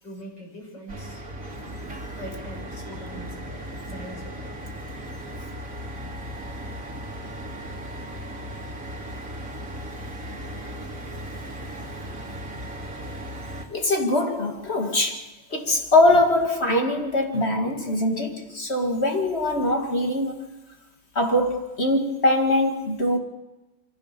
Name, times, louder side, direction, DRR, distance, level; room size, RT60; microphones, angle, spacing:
voice 1, 0.0-1.2 2.2-4.5, equal, 65° left, 7.3 m, -42 dB
sound 1, 0.9-13.6, equal, 45° right, 2.9 m, -36 dB
voice 2, 10.0-10.4 10.6-10.7 13.0-13.1 13.7-15.2 15.5-20.5 21.1-23.2, left 1 dB, 35° left, 2.4 m, -22 dB
26.0 x 15.0 x 6.9 m
omnidirectional pair, 2.1 m